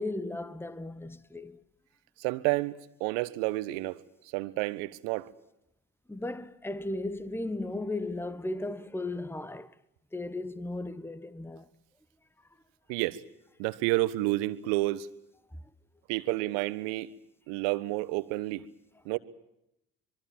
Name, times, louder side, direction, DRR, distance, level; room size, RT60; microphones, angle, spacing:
voice 1, 0.0-1.6 6.1-9.7 10.1-11.7, left 2 dB, 5° left, 1.4 m, -36 dB
voice 2, 2.2-4.0 4.3-5.3 12.9-13.2 13.6-15.1 16.1-17.1 17.5-18.6 19.0-19.2, right 19 dB, 70° right, 1.4 m, -30 dB
25.5 x 23.0 x 7.4 m
hypercardioid pair, 50°, 41 cm